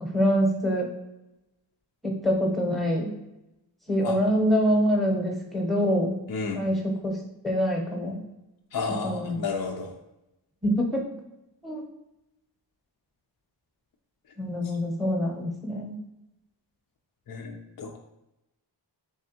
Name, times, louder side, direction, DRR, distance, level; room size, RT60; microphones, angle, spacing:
voice 1, 0.0-0.9 2.0-3.1 3.9-6.2 6.5-7.2 7.4-8.2 8.9-9.4 10.6-11.0 11.6-11.8 14.4-16.0, equal, ahead, -1 dB, 0.8 m, -25 dB
voice 2, 6.3-6.6 8.7-9.9 17.3-18.0, left 4 dB, 50° left, 2 dB, 0.5 m, -32 dB
3.4 x 3.4 x 2.8 m, 0.92 s
wide cardioid pair, 70°, 44 cm